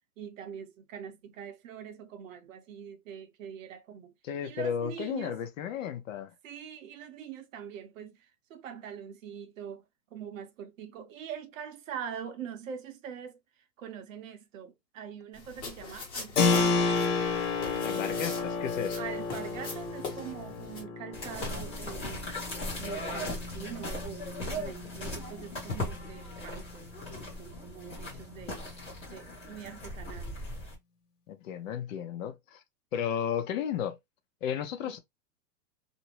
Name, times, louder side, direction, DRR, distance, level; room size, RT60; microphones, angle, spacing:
voice 1, 0.2-4.1 4.4-5.4 6.4-9.8 10.1-13.4 13.8-17.0 18.9-22.3 22.8-28.7 29.1-30.4 34.8-34.9, right 8 dB, 55° right, 0.7 m, -43 dB
voice 2, 4.2-6.3 17.8-19.0 31.3-32.6 32.9-34.0 34.4-35.0, left 8 dB, 55° left, 0.6 m, -33 dB
sound 1, 15.3-20.8, left 4 dB, 30° left, 1.1 m, -42 dB
Keyboard (musical), 16.4-26.7, left 4 dB, 75° left, 1.2 m, -32 dB
sound 2, 21.1-30.7, left 1 dB, 15° left, 0.7 m, -38 dB
2.6 x 2.0 x 2.8 m
hypercardioid pair, 155°, 47 cm